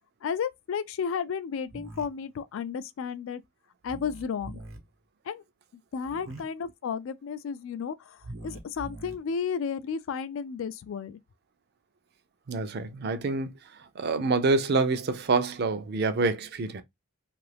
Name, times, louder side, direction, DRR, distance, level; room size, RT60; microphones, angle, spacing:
voice 1, 0.2-3.4 3.8-4.6 5.3-5.4 5.9-11.2, left 6 dB, 70° left, 0.3 m, -33 dB
sound 1, 1.7-2.0 3.8-4.8 6.0-6.4 8.2-9.1, right 2 dB, 80° right, 0.9 m, -43 dB
voice 2, 12.5-13.5 13.8-16.8, right 3 dB, 50° right, 0.4 m, -27 dB
2.6 x 2.4 x 3.3 m
head